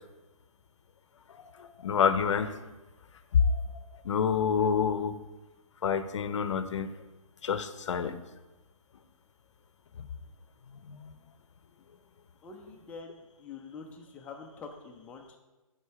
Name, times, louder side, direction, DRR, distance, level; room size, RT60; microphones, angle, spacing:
voice 1, 1.4-2.6 3.3-3.6 4.0-5.2 5.8-6.9 7.4-8.1 10.7-11.1, left 6 dB, 55° left, 11 dB, 0.7 m, -27 dB
voice 2, 12.4-15.4, left 4 dB, 10° left, 2 dB, 0.5 m, -46 dB
8.1 x 4.4 x 4.7 m, 1.1 s
hypercardioid pair, 150°, 18 cm